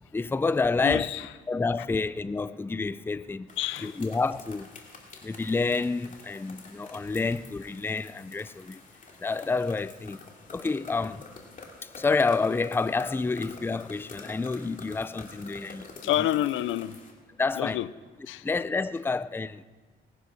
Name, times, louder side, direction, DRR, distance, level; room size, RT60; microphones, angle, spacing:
voice 1, 0.1-1.1 1.5-3.5 3.8-4.7 5.2-8.8 9.2-10.2 10.5-11.2 11.8-16.3 17.4-17.8 18.4-19.6, left 4 dB, 10° left, 0.4 m, -29 dB
voice 2, 0.8-1.3 3.6-4.0 12.9-13.2 16.0-17.0 17.6-17.9 18.3-18.5, left 13 dB, 80° left, 0.6 m, -28 dB
sound 1, 3.5-17.1, left 3 dB, 40° left, 2.7 m, -48 dB
18.5 x 9.8 x 6.0 m
cardioid pair, 90°, 20 cm